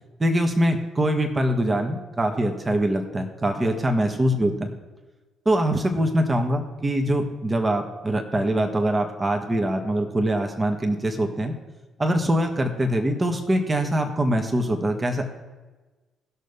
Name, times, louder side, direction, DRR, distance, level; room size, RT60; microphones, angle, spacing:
voice 1, 0.2-4.7 5.4-11.5 12.0-15.2, right 1 dB, 25° right, 4 dB, 1.7 m, -23 dB
18.5 x 6.6 x 3.5 m, 1.2 s
figure-of-eight pair, 45°, 0 cm